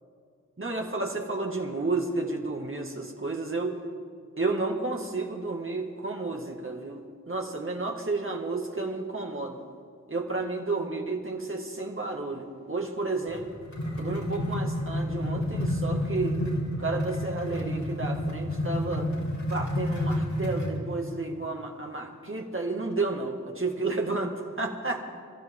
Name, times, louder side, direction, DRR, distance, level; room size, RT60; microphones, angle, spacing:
voice 1, 0.6-3.8 4.4-9.6 10.1-13.5 14.0-16.4 16.8-19.1 19.5-25.0, right 3 dB, 40° right, 1 dB, 2.3 m, -31 dB
sound 1, 13.3-20.8, left 1 dB, 65° left, 3.7 m, -30 dB
26.5 x 14.0 x 3.9 m, 2.1 s
wide cardioid pair, 50°, 31 cm